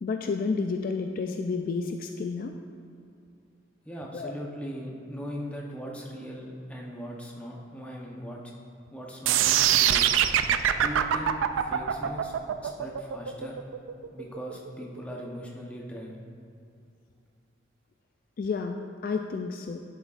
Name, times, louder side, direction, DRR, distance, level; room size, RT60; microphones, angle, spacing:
voice 1, 0.0-2.6 4.1-4.3 18.4-19.8, left 4 dB, 45° left, 4 dB, 0.3 m, -31 dB
voice 2, 3.8-8.5 8.9-10.1 10.8-12.3 12.6-13.6 14.1-16.2, equal, 5° left, -2 dB, 0.8 m, -39 dB
sound 1, 9.3-15.3, right 10 dB, 90° right, 0.3 m, -24 dB
11.0 x 7.0 x 2.5 m, 2.5 s
head